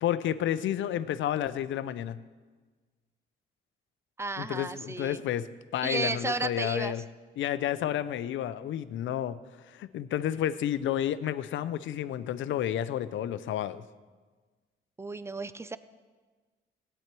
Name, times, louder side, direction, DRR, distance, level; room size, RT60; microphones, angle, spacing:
voice 1, 0.0-2.2 4.4-7.0 7.4-9.4 9.7-13.8, left 11 dB, 75° left, 14 dB, 0.6 m, -31 dB
voice 2, 4.2-5.2 5.8-7.0 15.0-15.8, right 3 dB, 15° right, 14 dB, 0.5 m, -33 dB
17.0 x 8.9 x 4.6 m, 1.4 s
cardioid pair, 90°, 20 cm